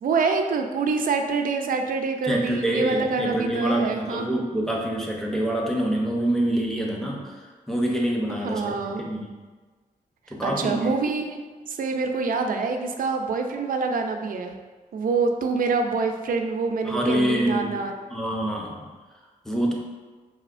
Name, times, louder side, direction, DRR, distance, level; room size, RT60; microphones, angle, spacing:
voice 1, 0.0-4.3 8.4-9.0 10.4-14.6 14.9-17.9, right 4 dB, 70° right, 4 dB, 0.4 m, -26 dB
voice 2, 2.2-7.4 7.7-9.3 10.3-10.9 16.8-17.6 18.1-18.9 19.4-19.7, right 1 dB, 5° left, -2 dB, 0.7 m, -26 dB
5.5 x 2.7 x 2.5 m, 1.3 s
wide cardioid pair, 95°, 15 cm